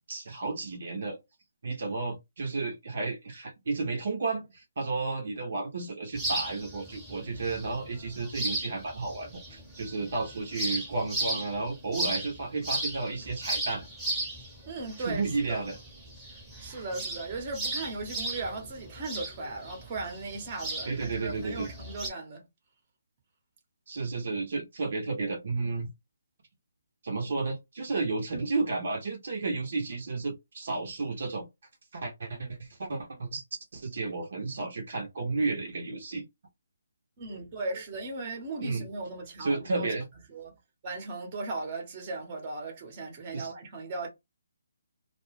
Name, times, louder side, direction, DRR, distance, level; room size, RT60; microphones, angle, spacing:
voice 1, 0.1-1.2 1.6-13.9 15.0-15.8 20.9-21.7 23.9-25.9 27.0-31.4 31.9-33.4 33.7-36.3 38.6-38.9 39.4-40.0 43.3-43.5, right 3 dB, 60° right, 0.9 m, -32 dB
sound 1, 6.1-22.1, right 1 dB, 5° right, 1.0 m, -36 dB
voice 2, 14.7-15.6 16.3-22.5 37.2-39.9 40.3-40.5 40.8-44.1, right 3 dB, 30° right, 1.0 m, -37 dB
2.3 x 2.2 x 3.2 m
figure-of-eight pair, 150°, 0 cm